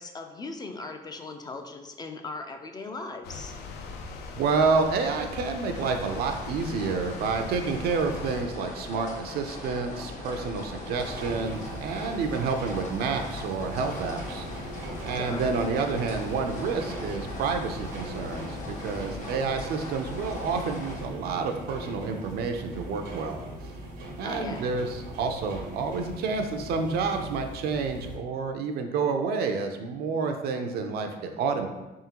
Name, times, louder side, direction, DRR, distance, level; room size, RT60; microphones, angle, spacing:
voice 1, 0.0-3.5 15.2-15.4 24.2-24.7, left 3 dB, 25° left, 5 dB, 0.3 m, -38 dB
sound 1, 3.2-8.4, left 4 dB, 80° left, 0.5 m, -40 dB
voice 2, 4.3-14.5 15.0-23.8 24.2-31.7, right 4 dB, 70° right, 5 dB, 0.5 m, -29 dB
sound 2, 5.7-21.0, left 1 dB, 45° left, 1.0 m, -39 dB
sound 3, 10.9-28.2, right 1 dB, 85° right, 0.9 m, -40 dB
3.6 x 3.6 x 2.9 m, 1.0 s
cardioid pair, 110°, 17 cm